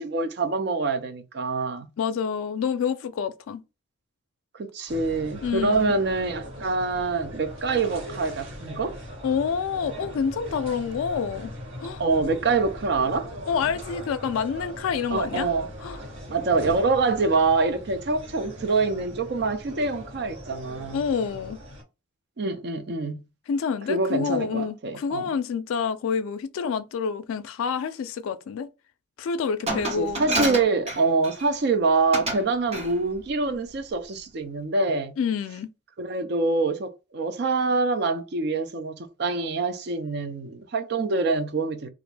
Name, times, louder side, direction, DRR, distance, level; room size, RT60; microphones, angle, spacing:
voice 1, 0.0-1.9 4.6-9.0 12.0-13.3 15.1-15.7 16.3-21.0 22.4-23.2 23.9-25.3 30.0-35.2 36.0-41.9, right 3 dB, 50° right, 0.4 m, -25 dB
voice 2, 2.0-3.6 5.4-5.9 9.2-11.5 11.8-12.0 13.5-15.5 15.8-16.0 20.9-21.6 23.5-28.7 29.2-30.6 35.2-35.7, left 6 dB, 80° left, 0.3 m, -28 dB
sound 1, 4.9-21.8, equal, 70° right, 1.6 m, -40 dB
Glass, 29.7-31.5 32.1-32.5 32.7-33.0, right 2 dB, 30° right, 0.9 m, -28 dB
2.4 x 2.1 x 3.2 m
head